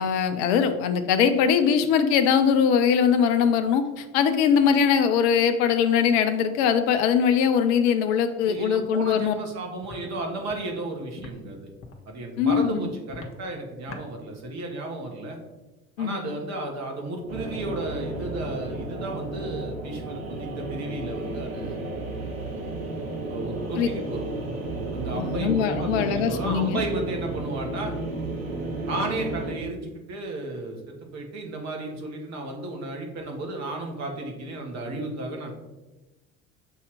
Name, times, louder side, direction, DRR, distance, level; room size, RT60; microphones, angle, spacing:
voice 1, 0.0-9.3 12.4-12.9 16.0-16.3 23.8-23.9 25.1-26.8, left 7 dB, 55° left, 8 dB, 0.6 m, -21 dB
voice 2, 8.5-11.7 12.1-15.4 16.0-21.8 23.3-24.3 24.9-27.9 28.9-35.5, right 2 dB, 40° right, 2 dB, 1.4 m, -33 dB
Walk footsteps, 9.2-9.3 9.8-10.0 10.5-10.6 11.2-11.3 11.8-12.0 12.5-12.7 13.1-13.3 13.9-14.0, left 3 dB, 30° left, 1.0 m, -41 dB
sound 1, 17.3-29.5, right 2 dB, 80° right, 1.0 m, -33 dB
7.1 x 2.8 x 4.8 m, 1.1 s
figure-of-eight pair, 65°, 41 cm